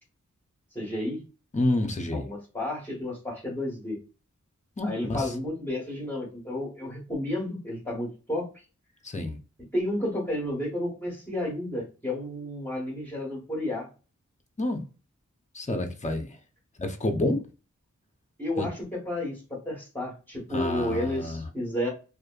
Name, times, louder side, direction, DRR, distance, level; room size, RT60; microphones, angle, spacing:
voice 1, 0.7-1.2 2.1-4.0 4.8-8.6 9.7-13.9 18.4-21.9, left 1 dB, 5° left, 1.3 m, -31 dB
voice 2, 1.5-2.3 4.8-5.2 9.0-9.3 14.6-14.8 15.5-16.4 16.8-17.4 18.6-18.7 20.5-21.4, left 1 dB, 25° left, 0.5 m, -28 dB
2.5 x 2.5 x 2.2 m
wide cardioid pair, 45°, 31 cm